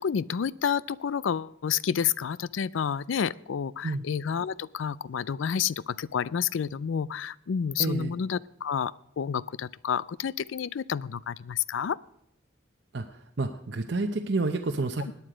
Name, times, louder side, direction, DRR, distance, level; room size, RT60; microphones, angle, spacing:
voice 1, 0.0-8.9 9.2-12.0, left 7 dB, 80° left, 21 dB, 0.4 m, -29 dB
voice 2, 7.8-8.1 12.9-15.1, right 3 dB, 60° right, 5 dB, 0.7 m, -29 dB
17.5 x 9.6 x 5.0 m, 0.78 s
head